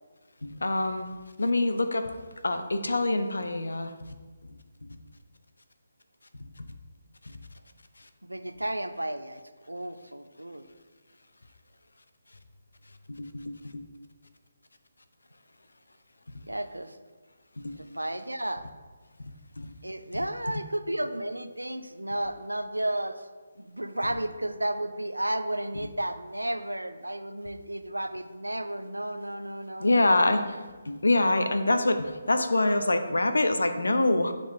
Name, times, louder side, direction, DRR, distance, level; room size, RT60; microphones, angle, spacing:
voice 1, 0.4-1.1 1.4-2.1 2.4-3.9 13.1-13.9 17.6-17.8 19.6-19.7 29.8-30.4 30.9-34.3, left 2 dB, 75° left, 8 dB, 0.6 m, -25 dB
voice 2, 8.2-9.4 9.7-10.7 16.5-17.0 17.8-18.7 19.8-23.3 23.6-30.4, right 1 dB, 90° right, 10 dB, 0.4 m, -33 dB
8.5 x 3.8 x 3.6 m, 1.4 s
figure-of-eight pair, 145°, 0 cm